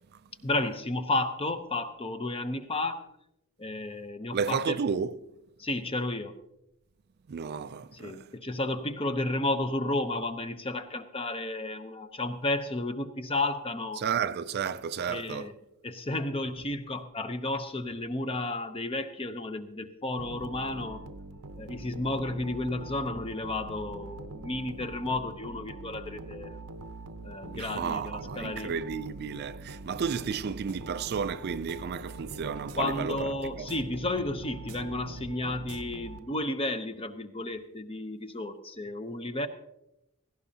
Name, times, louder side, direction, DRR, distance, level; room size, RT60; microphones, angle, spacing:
voice 1, 0.4-3.1 3.6-4.8 5.6-6.3 7.9-14.0 15.1-15.5 15.8-21.1 21.6-26.6 27.2-28.7 32.8-39.5, left 2 dB, 25° left, 0.8 m, -32 dB
voice 2, 4.3-5.2 7.3-8.3 14.0-15.5 27.5-33.7, right 6 dB, 45° right, 0.4 m, -32 dB
sound 1, 20.2-36.6, right 2 dB, 75° right, 0.8 m, -43 dB
17.0 x 15.5 x 2.8 m
head